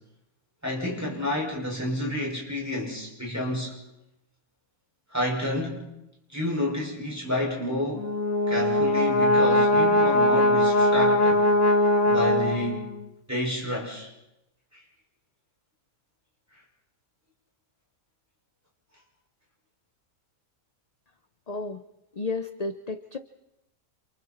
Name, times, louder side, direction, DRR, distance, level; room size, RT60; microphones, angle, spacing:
voice 1, 0.6-3.7 5.1-5.9 6.3-8.1 8.5-11.5 12.0-12.9 13.3-14.1 14.7-14.8, left 1 dB, 10° right, -3 dB, 6.0 m, -30 dB
Brass instrument, 7.9-13.0, left 1 dB, 65° left, 2.2 m, -21 dB
voice 2, 21.5-21.8 22.1-23.2, left 3 dB, 35° left, 9 dB, 0.8 m, -32 dB
28.5 x 28.0 x 4.4 m, 0.88 s
omnidirectional pair, 1.6 m